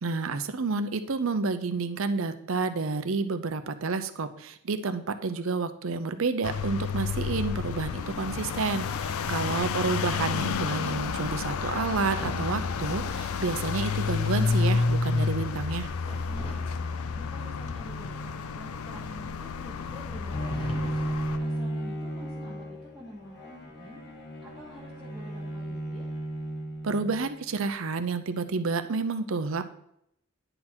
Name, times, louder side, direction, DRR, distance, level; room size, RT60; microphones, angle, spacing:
voice 1, 0.0-15.9 26.8-29.6, right 4 dB, 70° right, 10 dB, 0.6 m, -30 dB
sound 1, 6.4-21.4, left 5 dB, 85° left, 0.4 m, -30 dB
voice 2, 9.1-9.5 16.3-21.0 21.4-24.0 24.4-26.1, equal, ahead, -9 dB, 1.4 m, -47 dB
sound 2, 10.3-21.6, equal, 25° left, 0.9 m, -50 dB
Bowed string instrument, 20.3-27.4, right 1 dB, 55° left, 1.1 m, -34 dB
9.9 x 3.9 x 4.4 m, 0.76 s
head